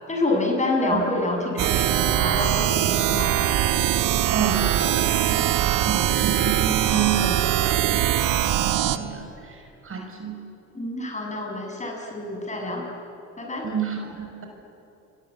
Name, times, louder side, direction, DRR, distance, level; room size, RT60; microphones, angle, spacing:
voice 1, 0.1-3.3 10.7-12.9 13.4-13.7, left 2 dB, 20° left, 1 dB, 7.2 m, -27 dB
sound 1, 1.6-9.0, right 12 dB, 75° right, 1.5 m, -22 dB
voice 2, 4.3-10.4 13.6-14.5, right 7 dB, 40° right, 3 dB, 5.8 m, -30 dB
29.0 x 23.0 x 8.3 m, 3.0 s
cardioid pair, 100°, 32 cm